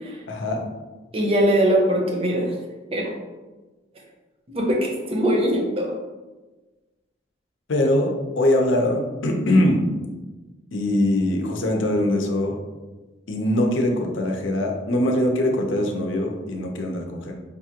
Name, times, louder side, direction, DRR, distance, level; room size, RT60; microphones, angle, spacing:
voice 1, 0.3-0.6 7.7-9.8 10.7-12.6 13.3-17.3, left 1 dB, 75° left, 2 dB, 0.6 m, -22 dB
voice 2, 1.1-2.5 2.9-3.1 4.5-5.9, equal, 30° right, 0 dB, 0.6 m, -21 dB
5.2 x 2.4 x 2.8 m, 1.2 s
head